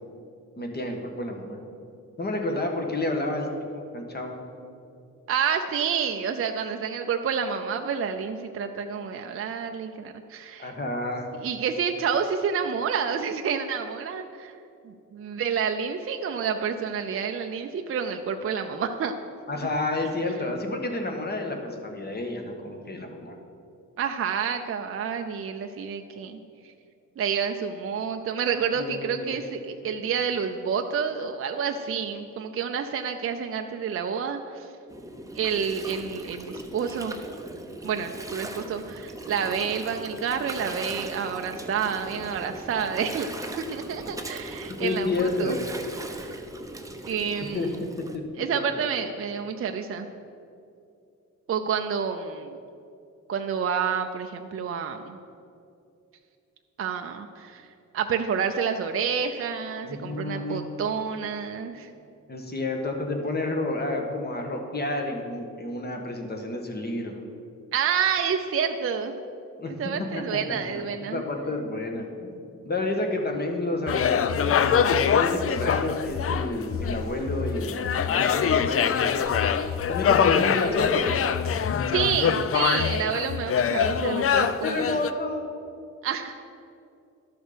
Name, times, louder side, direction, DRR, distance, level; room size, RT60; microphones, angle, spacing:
voice 1, 0.6-1.6 2.2-4.4 10.6-11.3 19.5-23.4 28.8-29.4 44.7-45.6 47.5-47.7 48.4-48.7 59.8-60.6 62.3-67.2 69.6-69.7 70.5-70.8 71.1-72.3 72.6-79.2 79.9-81.3 84.6-85.5, left 2 dB, 30° left, 3 dB, 1.4 m, -30 dB
voice 2, 5.3-10.7 11.4-14.5 14.9-19.2 24.0-26.4 27.2-34.7 35.3-37.1 37.8-43.3 43.6-45.6 46.1-46.3 47.1-47.7 48.4-50.1 51.5-52.6 53.3-55.2 56.8-57.7 57.9-61.9 67.7-69.1 69.7-71.2 81.9-84.9 86.0-86.3, right 7 dB, 45° right, 5 dB, 0.5 m, -29 dB
Gurgling, 34.9-48.2, right 1 dB, 10° right, 0.7 m, -39 dB
sound 1, 73.9-85.1, left 7 dB, 45° left, 0.4 m, -24 dB
12.0 x 6.3 x 5.1 m, 2.6 s
cardioid pair, 105°, 31 cm